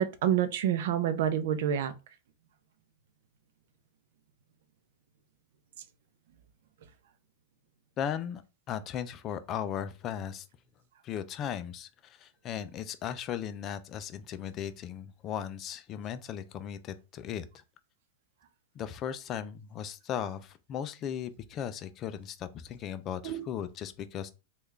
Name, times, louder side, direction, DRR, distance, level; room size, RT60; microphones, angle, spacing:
voice 1, 0.0-1.9 23.2-23.4, right 10 dB, 65° right, 0.5 m, -28 dB
voice 2, 8.0-8.4 8.7-10.5 11.0-17.6 18.7-24.3, left 9 dB, 30° left, 0.4 m, -37 dB
3.4 x 2.4 x 3.2 m
supercardioid pair, 145°, 0 cm